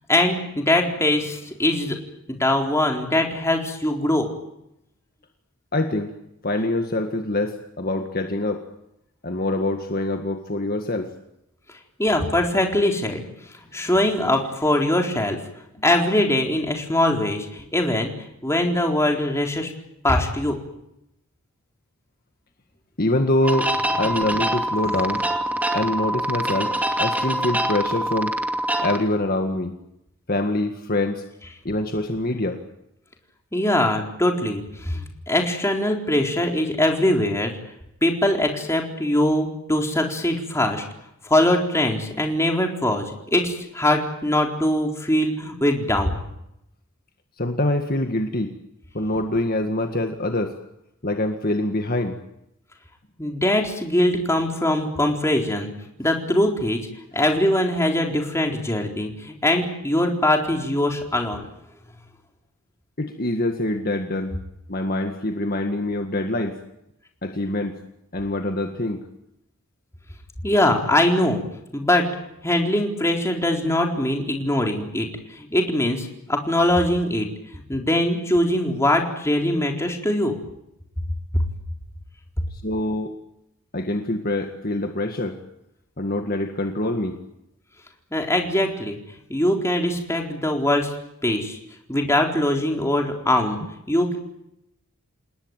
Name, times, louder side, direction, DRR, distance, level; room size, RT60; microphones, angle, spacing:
voice 1, 0.1-2.0 2.3-4.3 12.0-13.2 13.7-15.4 15.8-18.1 18.4-19.7 20.0-20.6 33.5-37.5 38.0-40.8 41.2-46.2 53.2-55.7 56.0-56.8 57.1-61.5 70.4-71.4 71.7-72.1 72.4-77.3 77.7-80.4 81.3-81.4 88.1-89.0 89.3-91.0 91.2-91.6 91.9-93.6 93.9-94.2, left 1 dB, 15° left, 2 dB, 4.1 m, -22 dB
voice 2, 5.7-6.1 6.4-8.6 9.2-11.1 23.0-25.2 25.7-28.3 28.8-29.7 30.3-31.2 31.6-32.6 47.4-48.5 48.9-50.6 51.0-52.2 63.0-64.3 64.7-66.6 67.2-67.8 68.1-69.0 82.5-83.1 83.7-85.4 86.0-87.2, left 1 dB, 40° left, 5 dB, 1.9 m, -25 dB
sound 1, 23.4-29.0, right 1 dB, 5° right, 2.5 m, -25 dB
28.5 x 19.5 x 9.0 m, 0.83 s
head